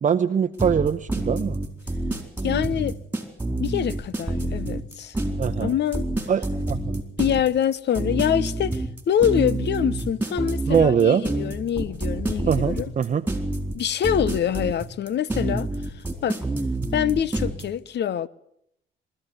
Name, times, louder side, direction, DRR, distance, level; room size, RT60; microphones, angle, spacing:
voice 1, 0.0-1.6 5.4-5.7 6.3-7.0 10.7-11.2 12.5-13.2, right 7 dB, 40° right, 0.8 m, -22 dB
sound 1, 0.6-17.6, right 2 dB, 10° right, 4.3 m, -27 dB
voice 2, 2.4-3.0 3.6-5.1 5.6-6.0 7.2-12.9 13.7-15.7 16.2-16.4 16.9-18.3, left 9 dB, 60° left, 0.9 m, -25 dB
22.5 x 14.0 x 9.6 m
cardioid pair, 90°, 20 cm